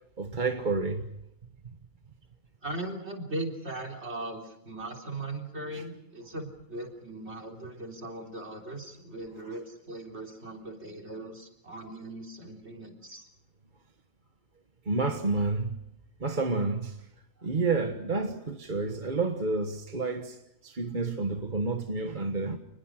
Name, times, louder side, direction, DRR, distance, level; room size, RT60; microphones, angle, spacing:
voice 1, 0.2-1.1 14.8-15.8 16.2-17.0 17.4-20.4 20.6-22.6, right 3 dB, 35° right, 1.5 m, -29 dB
voice 2, 2.6-13.3, right 2 dB, 50° right, 3.8 m, -39 dB
29.5 x 20.5 x 6.4 m
omnidirectional pair, 1.4 m